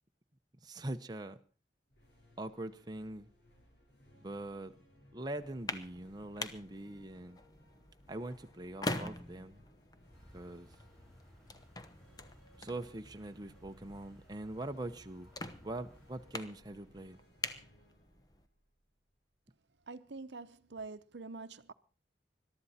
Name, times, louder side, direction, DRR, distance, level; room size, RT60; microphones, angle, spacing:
voice 1, 0.6-1.4 2.4-3.3 4.2-4.8 5.1-7.4 8.1-9.6 10.3-10.7 12.5-15.3 15.6-17.2, right 1 dB, 25° right, 0.9 m, -43 dB
sound 1, 1.9-19.3, left 1 dB, 75° left, 6.6 m, -65 dB
sound 2, 5.4-18.5, left 2 dB, 20° left, 1.0 m, -45 dB
sound 3, 10.1-16.5, equal, 5° left, 8.0 m, -61 dB
voice 2, 19.9-21.7, right 3 dB, 80° right, 0.9 m, -46 dB
22.0 x 12.5 x 4.3 m
head